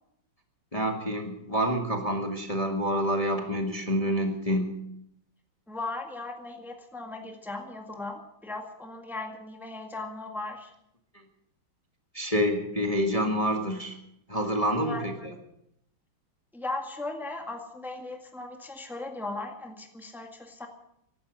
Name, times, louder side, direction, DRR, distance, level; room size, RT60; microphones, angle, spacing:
voice 1, 0.7-4.8 12.1-13.9 14.3-15.3, equal, 20° left, 2 dB, 1.6 m, -27 dB
voice 2, 5.7-10.7 14.8-15.3 16.5-20.7, left 2 dB, ahead, 2 dB, 1.8 m, -37 dB
16.0 x 12.0 x 6.5 m, 0.77 s
omnidirectional pair, 2.3 m